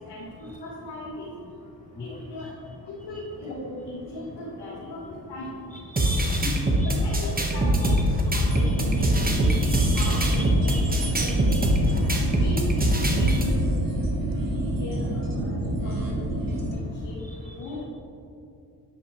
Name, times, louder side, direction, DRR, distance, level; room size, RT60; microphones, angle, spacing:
voice 1, 0.1-1.3 2.0-2.5 2.9-5.5 6.4-9.5 9.9-10.8 11.2-11.6 12.1-12.7 13.1-13.9 14.4-16.1 17.0-17.2 17.6-17.9, left 1 dB, 75° left, -5 dB, 1.4 m, -38 dB
voice 2, 5.9-6.9 7.8-8.0 8.4-11.7 17.5-17.6, left 1 dB, 20° left, 3 dB, 0.5 m, -37 dB
sound 1, 6.0-13.5, right 1 dB, 20° right, 1.2 m, -23 dB
sound 2, 8.4-16.7, right 1 dB, 55° right, 1.3 m, -29 dB
9.5 x 5.8 x 3.1 m, 2.5 s
cardioid pair, 60°, 41 cm